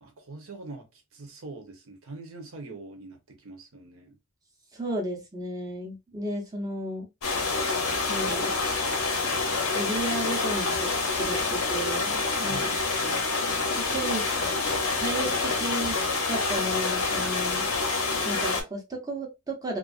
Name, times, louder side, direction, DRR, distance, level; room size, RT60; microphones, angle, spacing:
voice 1, 0.0-4.2 12.5-12.8, right 3 dB, 70° right, 0.8 m, -43 dB
voice 2, 4.7-7.1 8.1-8.6 9.7-12.6 13.9-14.2 15.0-17.7 18.2-19.8, right 1 dB, 15° right, 0.6 m, -33 dB
sound 1, 7.2-18.6, left 3 dB, 85° left, 0.8 m, -27 dB
2.4 x 2.3 x 2.4 m
head